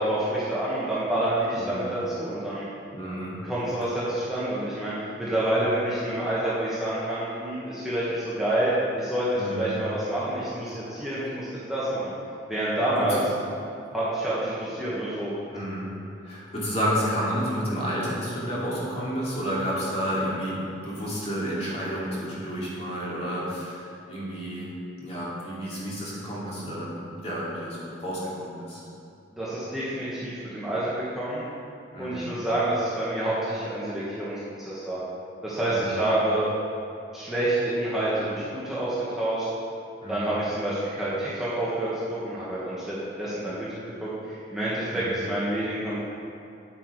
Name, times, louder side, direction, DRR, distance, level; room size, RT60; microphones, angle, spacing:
voice 1, 0.0-2.6 3.4-8.7 9.0-12.1 12.5-13.2 13.9-15.3 29.3-31.4 32.0-35.0 35.4-36.5 37.1-39.5 40.1-46.0, right 1 dB, ahead, -10 dB, 1.5 m, -28 dB
voice 2, 1.6-1.9 2.9-3.4 9.3-9.7 10.9-11.1 12.9-13.2 15.5-15.9 16.2-24.7 25.0-28.8 31.9-32.3 35.7-36.0 40.0-40.3 44.9-45.2, equal, 30° left, -7 dB, 2.6 m, -31 dB
9.1 x 8.3 x 4.8 m, 2.6 s
head